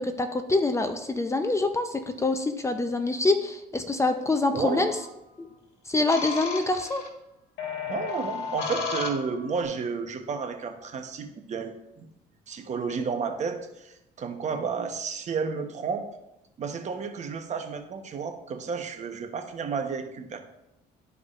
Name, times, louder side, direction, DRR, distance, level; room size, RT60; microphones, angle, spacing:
voice 1, 0.0-4.9 5.4-5.5 5.9-7.0, left 2 dB, 15° left, 7 dB, 0.5 m, -25 dB
voice 2, 4.5-4.8 7.9-12.1 12.5-16.1 16.6-20.4, right 5 dB, 45° right, 6 dB, 0.9 m, -32 dB
sound 1, 4.6-5.1 6.1-7.1 7.6-9.6, left 5 dB, 85° left, 1.5 m, -34 dB
12.5 x 4.7 x 2.5 m, 0.87 s
cardioid pair, 110°, 17 cm